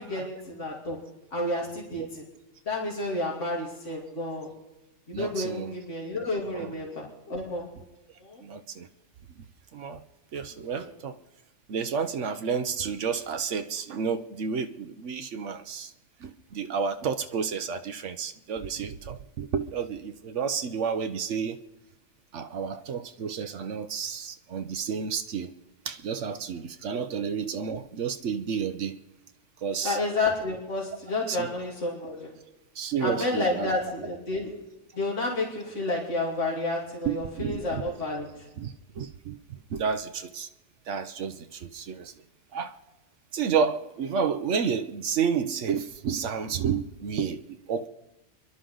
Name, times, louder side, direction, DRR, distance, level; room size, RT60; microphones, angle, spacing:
voice 1, 0.0-2.3 2.6-4.5 5.1-7.7 8.2-8.4 10.7-10.9 27.1-27.2 29.8-32.3 33.0-34.6 34.9-38.5, left 2 dB, 80° left, -3 dB, 3.3 m, -31 dB
voice 2, 5.1-5.7 6.5-6.7 8.4-8.9 9.7-10.0 10.3-11.2 11.7-15.9 16.2-21.6 22.3-25.5 25.8-29.0 29.6-30.0 31.3-31.5 32.7-33.8 37.0-37.8 38.6-39.4 39.7-40.5 40.9-42.1 42.5-42.8 43.3-47.9, right 6 dB, 80° right, 8 dB, 1.1 m, -31 dB
29.5 x 11.5 x 3.9 m, 0.99 s
omnidirectional pair, 1.2 m